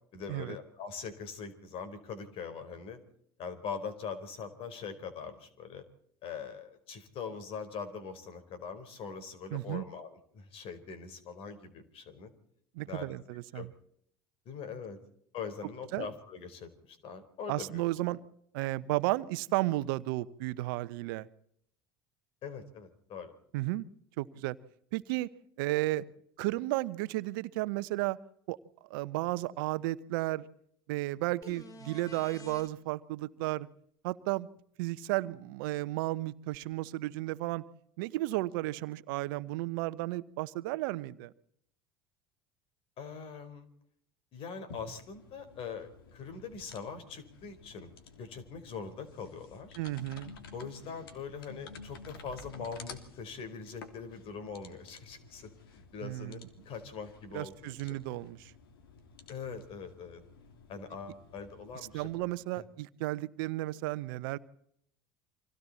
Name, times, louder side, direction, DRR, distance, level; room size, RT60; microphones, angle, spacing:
voice 1, 0.1-3.0 3.4-5.8 6.2-12.3 12.9-13.2 13.5-13.7 14.4-15.0 15.3-17.8 22.4-23.3 43.0-43.7 44.3-47.9 48.2-49.8 50.5-58.0 59.3-60.2 60.7-62.1 62.5-62.6, left 5 dB, 50° left, 9 dB, 4.5 m, -42 dB
voice 2, 9.5-9.8 12.7-13.7 15.9-16.1 17.5-18.2 18.5-21.3 23.5-23.8 24.2-24.6 24.9-25.3 25.6-26.0 26.4-28.2 28.5-28.6 28.9-30.5 30.9-33.7 34.0-34.5 34.8-37.6 38.0-41.3 49.8-50.3 56.0-56.4 57.3-58.5 61.9-64.4, right 18 dB, 65° right, 15 dB, 1.0 m, -33 dB
sound 1, 31.4-32.7 36.5-36.6, left 3 dB, 30° left, 2.7 m, -49 dB
sound 2, 44.7-62.3, left 4 dB, 75° left, 3.1 m, -52 dB
30.0 x 25.5 x 4.3 m, 0.69 s
figure-of-eight pair, 65°, 12 cm